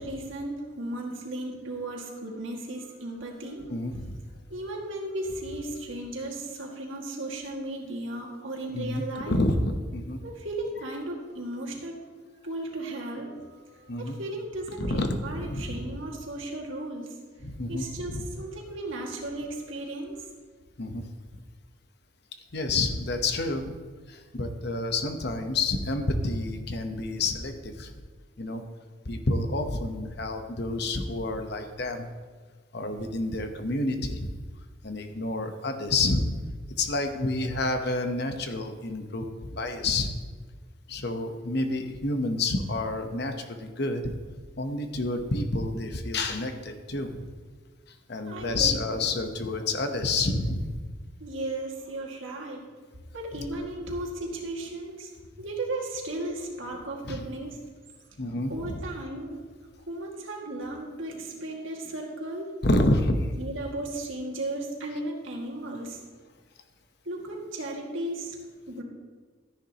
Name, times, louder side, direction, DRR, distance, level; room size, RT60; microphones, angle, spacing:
voice 1, 0.0-3.7 4.5-9.4 10.2-12.0 12.4-17.1 17.7-20.3 48.3-49.2 51.2-52.6 53.1-55.1 55.4-57.6 58.5-59.5 59.9-62.6 63.4-66.0 67.1-68.4 68.7-68.8, right 1 dB, 80° right, -1 dB, 2.1 m, -35 dB
voice 2, 3.7-4.2 8.7-10.2 13.9-14.2 14.8-15.8 17.4-18.2 20.8-21.0 22.5-23.7 24.1-27.9 28.4-28.6 29.1-32.1 32.7-34.3 34.8-36.3 36.8-40.1 40.9-44.0 44.6-47.3 48.1-50.8 53.3-53.4 57.0-57.2 58.2-58.8 62.6-63.3, left 2 dB, 55° left, 6 dB, 1.0 m, -29 dB
13.5 x 10.5 x 3.0 m, 1.4 s
head